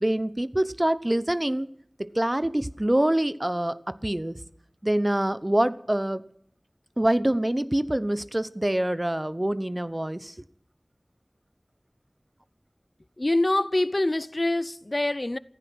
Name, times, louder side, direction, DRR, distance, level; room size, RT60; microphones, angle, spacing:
voice 1, 0.0-1.7 2.0-4.4 4.8-6.3 7.0-10.3, right 1 dB, 30° right, 0.9 m, -25 dB
voice 2, 13.2-15.4, left 1 dB, 55° left, 0.6 m, -25 dB
15.5 x 15.0 x 6.2 m
wide cardioid pair, 45°, 0 cm